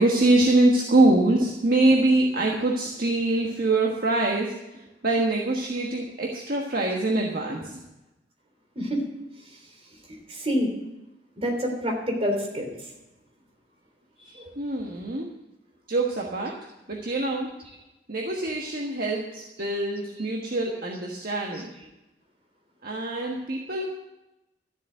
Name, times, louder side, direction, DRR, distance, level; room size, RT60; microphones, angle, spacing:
voice 1, 0.0-7.8 14.6-15.3 15.9-16.5 16.9-17.5 18.1-21.7 22.8-23.9, right 2 dB, 55° right, -1 dB, 1.5 m, -24 dB
voice 2, 10.3-10.7 11.4-12.7 14.2-14.5 19.6-19.7 20.2-20.3 21.8-21.9, equal, 35° right, 2 dB, 3.3 m, -27 dB
13.0 x 7.4 x 9.0 m, 0.96 s
head